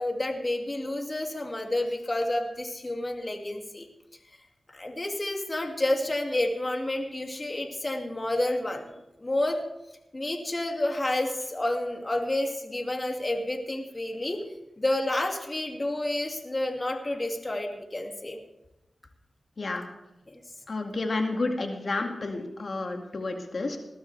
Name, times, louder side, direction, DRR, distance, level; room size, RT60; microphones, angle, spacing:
voice 1, 0.0-3.9 4.7-9.6 10.1-14.4 14.8-18.4 20.3-20.4, left 1 dB, 35° left, 2 dB, 2.4 m, -30 dB
voice 2, 20.7-23.8, left 3 dB, 60° left, 3 dB, 2.2 m, -30 dB
20.0 x 12.5 x 3.4 m, 0.90 s
cardioid pair, 55°, 0 cm